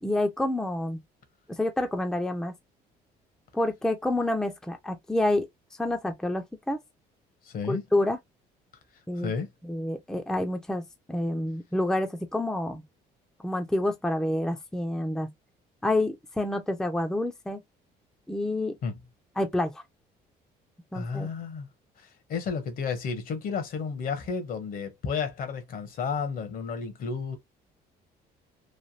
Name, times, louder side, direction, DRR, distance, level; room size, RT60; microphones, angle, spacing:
voice 1, 0.0-1.0 1.5-2.5 3.5-5.5 5.8-6.8 7.7-8.2 9.1-9.3 9.6-10.8 11.1-12.8 13.4-15.3 15.8-17.6 18.3-18.7 19.4-19.8 20.9-21.3, left 1 dB, 5° left, 0.5 m, -28 dB
voice 2, 7.4-7.8 9.2-9.5 18.8-19.0 20.9-21.7 22.0-27.4, left 5 dB, 55° left, 1.0 m, -32 dB
3.2 x 2.2 x 2.6 m
cardioid pair, 110°, 17 cm